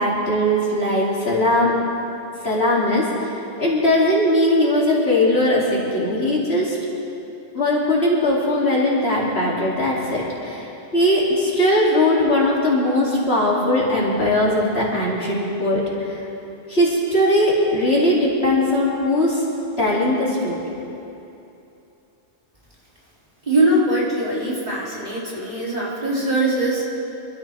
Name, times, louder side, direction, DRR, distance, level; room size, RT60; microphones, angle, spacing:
voice 1, 0.0-1.8 2.4-3.3 3.6-6.8 7.5-10.7 10.9-16.3 16.7-19.4 19.8-20.6, left 1 dB, 60° left, -6 dB, 3.4 m, -19 dB
voice 2, 23.5-26.8, right 1 dB, 35° right, -7 dB, 3.4 m, -21 dB
26.0 x 13.5 x 3.6 m, 2.8 s
omnidirectional pair, 1.2 m